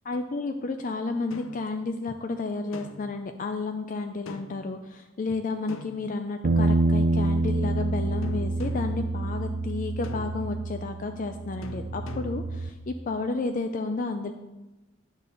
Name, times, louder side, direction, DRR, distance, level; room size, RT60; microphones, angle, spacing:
voice 1, 0.1-14.3, left 3 dB, 40° left, 6 dB, 0.4 m, -31 dB
sound 1, 1.3-1.7 2.7-3.2 4.3-4.7 5.7-6.5 8.2-9.0 10.0-10.6 11.6-12.6, left 3 dB, 90° left, 0.6 m, -43 dB
sound 2, 6.4-12.7, right 2 dB, 55° right, 0.5 m, -27 dB
9.6 x 4.0 x 6.6 m, 1.1 s
head